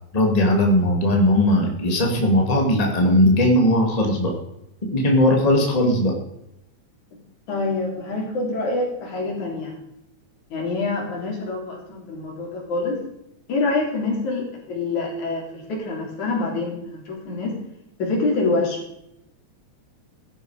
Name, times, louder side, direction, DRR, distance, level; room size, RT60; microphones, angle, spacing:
voice 1, 0.1-4.3 4.8-6.1, left 1 dB, 15° left, 1 dB, 2.2 m, -18 dB
voice 2, 7.5-9.8 10.5-13.0 13.5-17.6 18.0-18.8, left 3 dB, 75° left, -1 dB, 4.9 m, -26 dB
15.0 x 12.0 x 5.0 m, 0.83 s
omnidirectional pair, 3.4 m